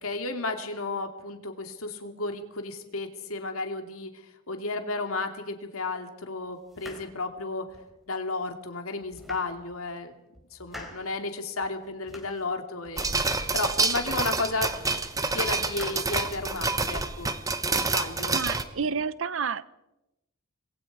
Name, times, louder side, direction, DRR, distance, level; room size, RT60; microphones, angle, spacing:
voice 1, 0.0-4.2 4.5-7.7 8.1-10.1 10.5-13.1 13.5-14.8 15.3-17.3 17.7-18.4, left 3 dB, 85° left, 5 dB, 2.5 m, -33 dB
sound 1, 6.7-8.0 8.5-8.6 9.0-10.0 10.3-11.2 11.6-12.5 12.8-13.9 14.2-15.0 15.3-16.6, left 1 dB, ahead, 4.0 m, -48 dB
sound 2, 13.0-18.6, right 3 dB, 15° right, 1.2 m, -27 dB
voice 2, 18.3-19.7, right 5 dB, 65° right, 17 dB, 0.7 m, -30 dB
28.0 x 21.0 x 4.8 m, 0.94 s
head